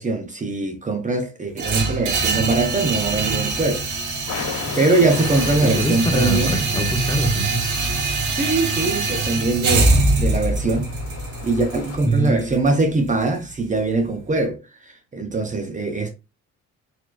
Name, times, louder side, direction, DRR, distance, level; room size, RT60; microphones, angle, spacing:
voice 1, 0.0-3.8 4.8-6.5 8.1-10.9 11.4-16.1, right 3 dB, 25° right, 0.7 m, -22 dB
sound 1, 1.6-13.6, right 3 dB, 70° right, 1.3 m, -23 dB
sound 2, 4.3-12.0, left 5 dB, 80° left, 1.9 m, -36 dB
voice 2, 5.6-8.0 12.0-12.6, right 1 dB, 15° left, 0.8 m, -24 dB
4.1 x 3.0 x 2.5 m
cardioid pair, 110°, 32 cm